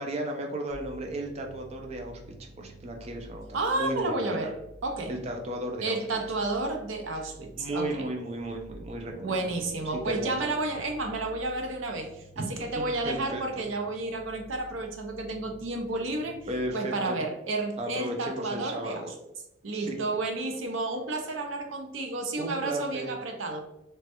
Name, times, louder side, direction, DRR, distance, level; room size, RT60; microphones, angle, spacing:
voice 1, 0.0-2.2 2.6-4.5 5.1-6.0 7.6-9.5 10.0-10.5 12.4-12.5 12.7-13.4 16.5-17.2 17.8-19.1 19.7-20.0 22.4-23.1, right 1 dB, 35° right, 2 dB, 0.4 m, -34 dB
sound 1, 0.7-16.7, right 1 dB, 10° right, 1.0 m, -50 dB
voice 2, 3.5-4.5 4.8-5.1 5.8-8.0 9.2-12.2 12.5-16.4 16.7-19.0 19.6-23.6, right 2 dB, 90° right, 4 dB, 0.6 m, -31 dB
3.2 x 2.2 x 2.8 m, 0.87 s
head